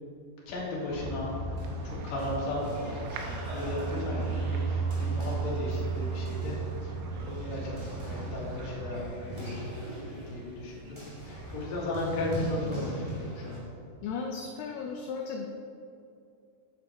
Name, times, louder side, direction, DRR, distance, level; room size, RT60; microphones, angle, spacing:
voice 1, 0.5-1.3 1.7-6.6 6.8-11.0 11.2-13.6, left 2 dB, 50° left, -5 dB, 2.7 m, -36 dB
sound 1, 0.9-9.1, right 4 dB, 80° right, 2.8 m, -34 dB
sound 2, 1.6-13.6, right 1 dB, 50° right, 0.3 m, -41 dB
voice 2, 14.0-15.5, left 5 dB, 80° left, 1 dB, 2.4 m, -35 dB
8.8 x 7.4 x 4.5 m, 2.5 s
omnidirectional pair, 5.1 m